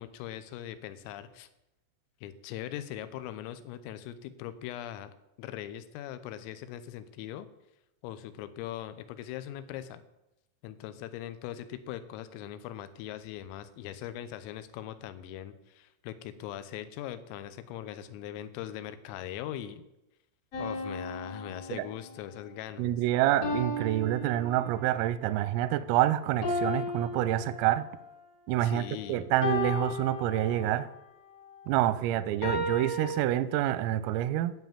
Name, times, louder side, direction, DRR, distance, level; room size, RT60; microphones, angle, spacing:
voice 1, 0.0-1.5 2.2-5.1 5.4-7.5 8.0-10.0 10.6-19.8 20.6-23.0 28.6-29.3, left 11 dB, 90° left, 12 dB, 3.5 m, -40 dB
sound 1, 20.5-22.3 23.4-25.1 26.4-28.1 29.4-30.9 32.4-33.2, left 1 dB, 45° left, 2.3 m, -34 dB
voice 2, 22.8-27.8 28.5-30.9 31.7-34.5, right 13 dB, 90° right, 15 dB, 3.3 m, -27 dB
11.5 x 5.8 x 8.9 m, 0.90 s
omnidirectional pair, 5.9 m